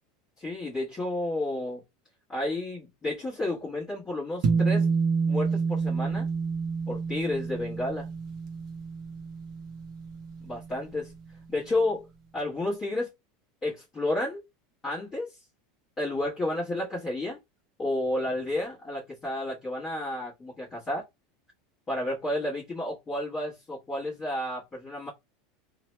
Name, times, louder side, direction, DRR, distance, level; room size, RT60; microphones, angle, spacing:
voice 1, 0.4-1.8 2.3-5.0 5.3-6.3 6.9-8.1 10.4-11.1 11.5-12.1 12.3-13.1 13.6-14.4 14.8-15.4 16.0-17.4 17.8-21.0 21.9-25.1, left 1 dB, 15° left, 1.1 m, -31 dB
sound 1, 4.4-11.0, right 5 dB, 35° right, 0.6 m, -29 dB
2.8 x 2.1 x 2.9 m
supercardioid pair, 175°, 0 cm